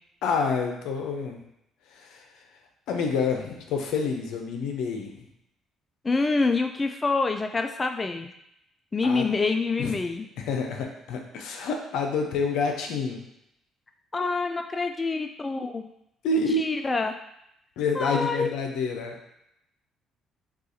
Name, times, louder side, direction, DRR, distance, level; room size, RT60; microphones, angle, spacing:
voice 1, 0.2-1.4 1.9-2.2 2.9-5.3 9.0-9.3 9.8-9.9 10.4-13.2 16.2-16.6 17.8-19.2, left 4 dB, 75° left, 3 dB, 0.6 m, -28 dB
voice 2, 6.0-8.3 8.9-10.3 14.1-15.9 16.3-17.1 17.9-18.5, left 3 dB, 25° left, 5 dB, 0.3 m, -26 dB
6.1 x 2.4 x 2.8 m, 0.80 s
supercardioid pair, 65°, 0 cm